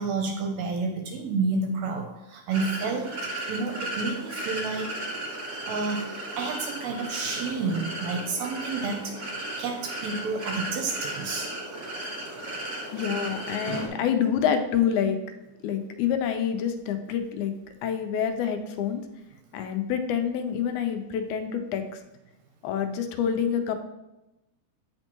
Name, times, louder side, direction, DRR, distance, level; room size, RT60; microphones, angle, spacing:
voice 1, 0.0-3.1 3.5-4.9 5.7-11.5, right 4 dB, 75° right, 3 dB, 1.7 m, -30 dB
sound 1, 2.5-13.9, right 1 dB, 50° right, 1.6 m, -35 dB
voice 2, 12.9-15.2 15.6-17.5 17.8-19.0 19.5-21.8 22.6-23.8, left 8 dB, 80° left, 6 dB, 1.9 m, -27 dB
8.9 x 4.3 x 3.0 m, 0.94 s
omnidirectional pair, 3.6 m